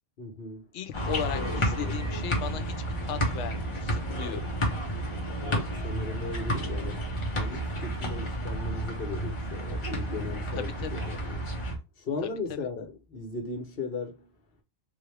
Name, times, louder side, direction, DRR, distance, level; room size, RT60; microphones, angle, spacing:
voice 1, 0.2-0.7 1.3-1.9 4.2-4.4 5.4-11.4 12.0-14.3, left 4 dB, 55° left, 1.1 m, -37 dB
voice 2, 0.7-2.7 3.0-4.5 10.5-10.9 12.5-12.6, left 9 dB, 85° left, 0.9 m, -36 dB
sound 1, 0.9-11.8, right 1 dB, 30° left, 1.0 m, -31 dB
3.7 x 2.4 x 3.2 m
omnidirectional pair, 1.2 m